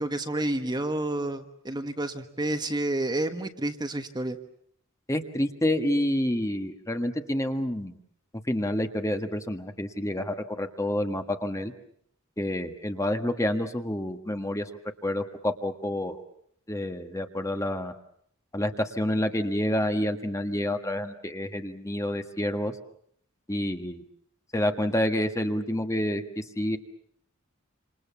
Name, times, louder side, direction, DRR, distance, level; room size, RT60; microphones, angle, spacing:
voice 1, 0.0-4.4, right 1 dB, 20° right, 7 dB, 1.5 m, -30 dB
voice 2, 5.1-8.0 8.5-11.7 12.4-14.7 15.0-16.2 16.7-17.9 18.5-22.7 23.5-24.0 24.5-26.8, left 1 dB, 15° left, 7 dB, 1.6 m, -28 dB
28.0 x 27.5 x 7.1 m, 0.67 s
head